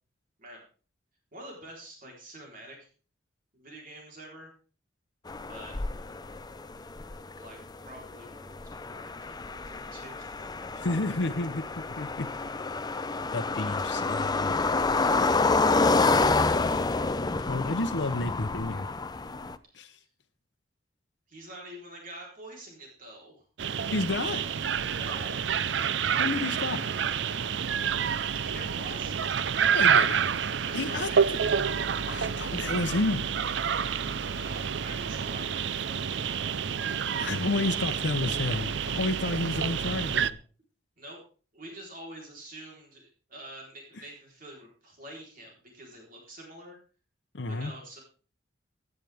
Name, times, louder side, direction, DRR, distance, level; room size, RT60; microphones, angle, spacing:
voice 1, 1.3-2.9 3.5-4.5 5.5-5.7 7.4-7.6 7.9-10.8 13.4-14.3 21.3-23.4 24.9-25.5 28.4-29.1 30.6-31.4 34.2-36.0 36.3-36.5 41.0-41.2 41.5-46.8 47.5-48.0, right 1 dB, 50° right, -1 dB, 3.9 m, -46 dB
sound 1, 5.3-19.6, left 3 dB, 20° left, 0.5 m, -28 dB
voice 2, 10.7-12.3 13.3-14.6 17.5-18.9 19.7-20.0 23.9-24.4 26.2-26.9 29.7-30.2 30.7-31.1 32.1-33.3 37.2-40.4 47.3-47.7, left 2 dB, 70° left, 5 dB, 0.8 m, -31 dB
sound 2, 23.6-40.3, right 7 dB, 75° right, 0.5 m, -28 dB
16.5 x 10.5 x 3.5 m, 0.38 s
head